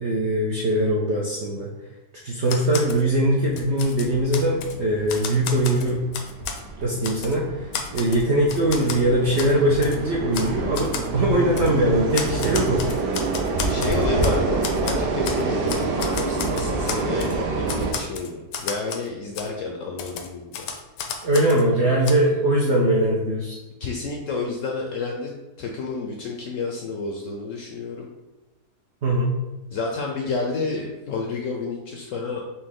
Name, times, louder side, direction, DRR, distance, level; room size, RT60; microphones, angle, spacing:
voice 1, 0.0-1.7 2.2-6.0 6.8-12.8 21.2-23.6 29.0-29.4, right 1 dB, 70° right, -3 dB, 0.6 m, -21 dB
Typewriter, 2.4-3.0 3.4-4.7 5.1-6.6 7.0-7.4 7.7-9.0 9.4-9.5 9.8-10.0 10.3-10.5 10.7-11.1 11.6-11.7 12.1-14.4 14.6-15.4 15.7-17.3 17.7-19.1 19.3-19.5 20.0-21.6 22.0-22.1, left 6 dB, 85° left, 1.2 m, -32 dB
sound 1, 3.1-17.9, right 3 dB, 85° right, 1.2 m, -27 dB
voice 2, 13.7-20.7 23.8-25.3 25.6-28.1 29.7-32.4, left 4 dB, 70° left, 1 dB, 0.7 m, -30 dB
4.3 x 2.7 x 3.7 m, 1.1 s
omnidirectional pair, 1.8 m